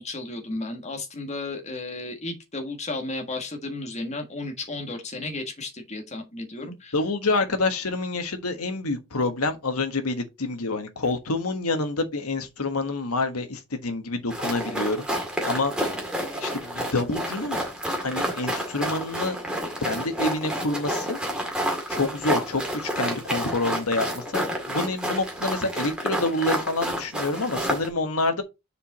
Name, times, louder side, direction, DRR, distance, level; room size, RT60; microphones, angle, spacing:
voice 1, 0.0-7.0, left 2 dB, 30° left, 1.6 m, -33 dB
voice 2, 6.6-15.1 15.4-15.7 16.4-17.6 18.0-19.4 19.8-21.2 21.9-28.4, left 2 dB, 80° left, 1.4 m, -27 dB
sound 1, 14.3-27.9, equal, 5° right, 2.0 m, -29 dB
6.7 x 4.8 x 4.1 m
head